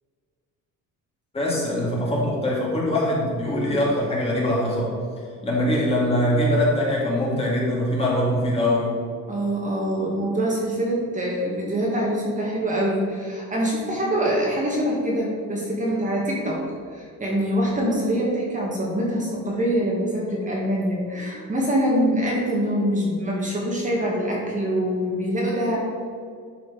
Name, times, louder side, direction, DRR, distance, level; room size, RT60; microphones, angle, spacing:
voice 1, 1.3-4.9 5.4-8.9, left 1 dB, 20° left, -5 dB, 2.3 m, -22 dB
voice 2, 9.3-16.6 16.9-25.8, equal, 25° right, -4 dB, 2.0 m, -24 dB
11.0 x 5.1 x 5.1 m, 2.1 s
cardioid pair, 165°, 31 cm